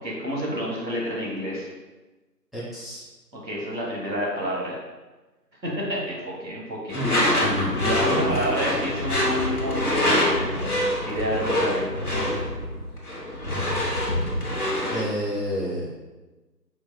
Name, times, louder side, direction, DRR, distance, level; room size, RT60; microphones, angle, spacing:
voice 1, 0.0-1.7 3.3-4.8 5.6-7.3 7.7-12.5, equal, 85° right, -4 dB, 1.3 m, -29 dB
voice 2, 2.5-3.1 6.9-8.3 14.9-15.9, equal, ahead, -10 dB, 0.7 m, -29 dB
Door / Screech, 6.9-15.1, left 1 dB, 65° left, 0.8 m, -25 dB
4.5 x 2.5 x 2.2 m, 1.2 s
figure-of-eight pair, 175°, 50 cm